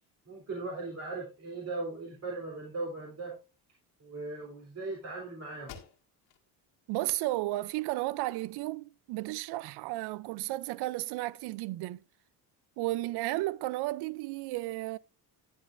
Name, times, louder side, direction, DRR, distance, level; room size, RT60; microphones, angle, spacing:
voice 1, 0.3-3.3 4.0-5.8, right 3 dB, 40° right, 3.2 m, -38 dB
sound 1, 5.7-6.5 6.9-7.0 7.6-8.5, left 8 dB, 75° left, 1.8 m, -52 dB
voice 2, 6.9-12.0 12.8-15.0, right 18 dB, 75° right, 0.5 m, -33 dB
11.0 x 10.5 x 2.5 m
cardioid pair, 115°, 40 cm